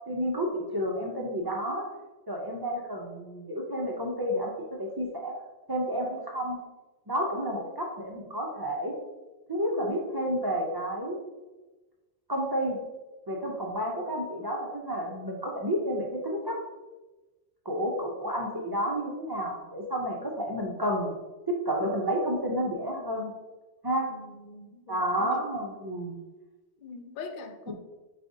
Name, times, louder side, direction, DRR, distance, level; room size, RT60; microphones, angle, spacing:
voice 1, 0.1-1.8 2.3-4.5 4.8-5.3 5.7-6.6 7.1-8.9 9.5-11.2 12.3-12.8 13.3-16.6 17.7-21.1 21.5-23.3 23.8-24.1 24.9-26.2 27.7-27.8, equal, 40° right, -1 dB, 0.3 m, -30 dB
voice 2, 24.1-25.4 26.8-27.7, left 4 dB, 60° left, 6 dB, 0.5 m, -43 dB
4.8 x 4.1 x 2.6 m, 1.1 s
omnidirectional pair, 1.2 m